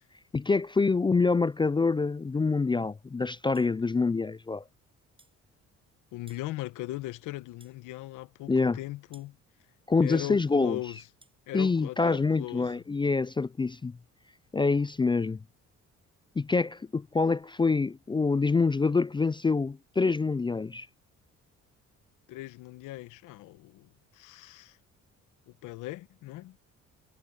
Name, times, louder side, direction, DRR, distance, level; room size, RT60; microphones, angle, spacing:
voice 1, 0.3-4.6 8.5-8.8 9.9-10.8 11.5-13.9 14.5-15.4 16.4-20.9, left 4 dB, 15° left, 0.4 m, -26 dB
sound 1, 3.5-3.8 5.2-5.4 6.3-6.5 7.6-7.8 9.1-9.3 11.2-11.4, right 2 dB, 15° right, 6.9 m, -59 dB
voice 2, 6.1-9.4 10.0-11.0 11.5-12.8 22.3-24.8 25.5-26.6, left 17 dB, 90° left, 1.1 m, -39 dB
cardioid pair, 80°, 31 cm